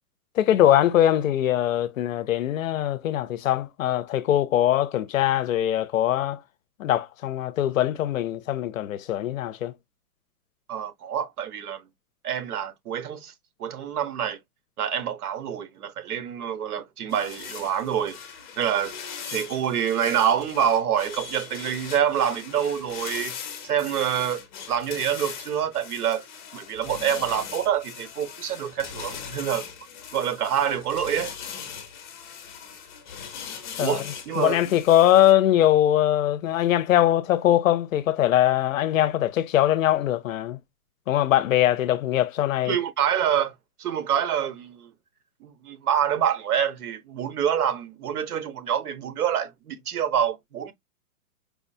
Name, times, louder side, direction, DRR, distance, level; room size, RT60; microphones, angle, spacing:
voice 1, 0.4-6.4 6.8-9.7 33.8-34.0 34.4-40.6 41.1-42.8, left 12 dB, 65° left, 0.6 m, -22 dB
voice 2, 10.7-11.8 12.2-13.3 13.6-14.4 14.8-18.2 18.6-19.0 19.3-23.3 23.6-26.2 26.5-29.7 30.1-31.3 33.8-34.6 42.6-43.5 43.8-44.9 45.4-50.7, right 9 dB, 85° right, 1.1 m, -26 dB
sound 1, 17.1-35.3, left 7 dB, 30° left, 0.8 m, -40 dB
4.8 x 2.3 x 2.6 m
hypercardioid pair, 165°, 44 cm